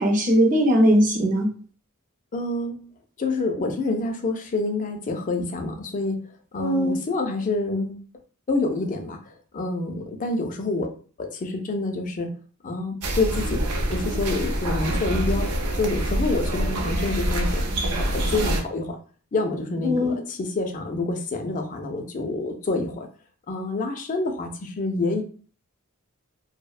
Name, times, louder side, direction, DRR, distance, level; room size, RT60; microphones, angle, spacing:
voice 1, 0.0-1.5 6.6-7.0 19.8-20.2, equal, 35° right, 1 dB, 0.6 m, -19 dB
voice 2, 2.3-2.8 3.2-6.2 6.5-8.0 8.5-10.9 11.2-12.3 12.6-13.6 13.9-15.5 15.8-17.6 17.9-19.0 19.3-23.1 23.5-25.2, left 2 dB, 35° left, 4 dB, 0.4 m, -27 dB
sound 1, 13.0-18.6, right 1 dB, 85° right, 0.5 m, -25 dB
2.7 x 2.0 x 2.3 m, 0.40 s
head